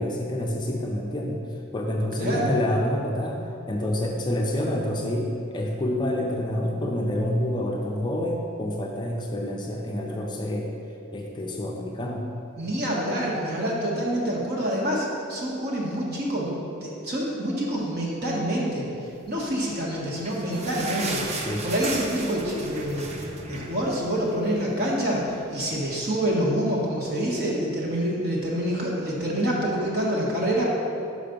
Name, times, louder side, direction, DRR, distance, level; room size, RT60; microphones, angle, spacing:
voice 1, 0.0-1.4 1.7-10.7 11.1-12.3 21.4-21.7, left 1 dB, 20° left, -1 dB, 0.5 m, -28 dB
voice 2, 2.2-2.6 12.6-16.5 16.8-18.9 19.3-23.1 23.4-25.2 25.5-30.6, equal, 50° right, -3 dB, 1.3 m, -27 dB
sound 1, 19.8-24.6 24.9-25.0 25.3-25.5 26.1-26.2, right 2 dB, 30° right, 0.5 m, -34 dB
5.8 x 5.0 x 5.2 m, 2.6 s
head